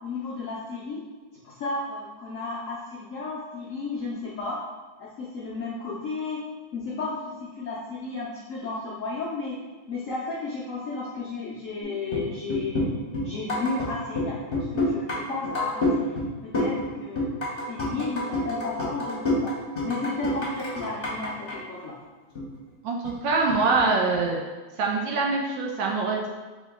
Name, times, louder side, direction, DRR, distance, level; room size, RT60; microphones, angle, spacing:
voice 1, 0.0-1.0 1.4-4.6 5.0-6.4 6.7-9.6 9.9-12.8 13.2-17.3 17.7-19.5 19.8-21.9, left 3 dB, 85° left, -6 dB, 0.7 m, -33 dB
sound 1, 11.8-12.2 12.5-13.9 14.1-15.2 15.4-16.3 16.5-16.9 17.1-21.5 21.9-22.0 22.3-22.6 23.0-23.8 24.1-24.2, left 1 dB, 40° left, 0.8 m, -27 dB
voice 2, 22.8-24.4 24.8-26.3, right 3 dB, 75° right, 0 dB, 1.2 m, -24 dB
3.7 x 3.5 x 3.7 m, 1.3 s
omnidirectional pair, 2.3 m